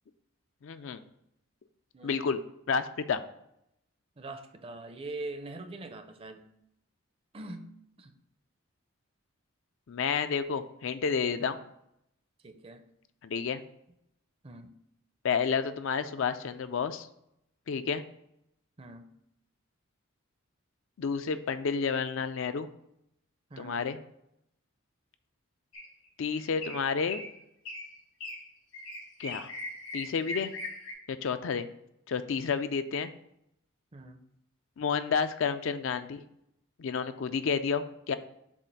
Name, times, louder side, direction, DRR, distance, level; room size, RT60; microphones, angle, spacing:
voice 1, 0.6-1.0 2.0-2.4 2.7-3.2 9.9-11.6 13.2-13.6 15.2-17.1 17.7-18.0 21.0-22.7 23.6-24.0 26.2-27.2 29.2-29.5 29.9-30.5 31.1-31.7 32.1-33.1 34.8-36.2 36.8-38.1, left 6 dB, 65° left, 10 dB, 0.4 m, -30 dB
voice 2, 1.9-2.3 2.7-2.8 4.2-6.5 7.3-7.7 8.0-8.1 11.4-11.6 12.4-12.8 14.4-14.7 18.8-19.1 23.5-23.8 33.9-34.2, right 2 dB, 25° right, 7 dB, 0.5 m, -43 dB
sound 1, 25.7-26.1 26.6-26.8 27.1-27.3 27.7-27.9 28.2-28.4 28.7-30.9, left 2 dB, 80° left, 2.2 m, -39 dB
7.2 x 2.5 x 5.3 m, 0.78 s
head